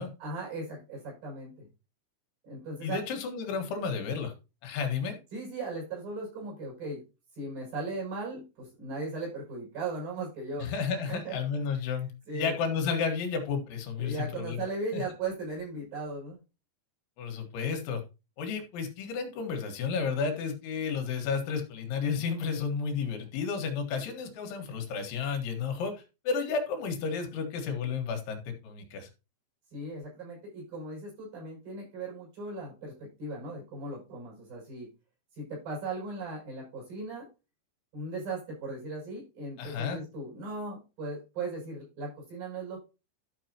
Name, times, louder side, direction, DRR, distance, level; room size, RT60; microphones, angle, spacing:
voice 1, 0.2-1.7 2.4-3.0 5.3-7.0 7.4-10.7 11.1-11.4 12.3-12.5 14.0-16.4 29.7-34.9 35.3-37.3 37.9-42.8, right 3 dB, 50° right, -2 dB, 8.0 m, -37 dB
voice 2, 2.8-4.3 4.6-5.2 10.6-14.7 14.9-15.0 17.2-18.0 18.4-25.9 26.3-29.1 39.6-40.0, left 5 dB, 80° left, 4 dB, 4.0 m, -32 dB
12.5 x 6.6 x 2.9 m, 0.29 s
omnidirectional pair, 5.3 m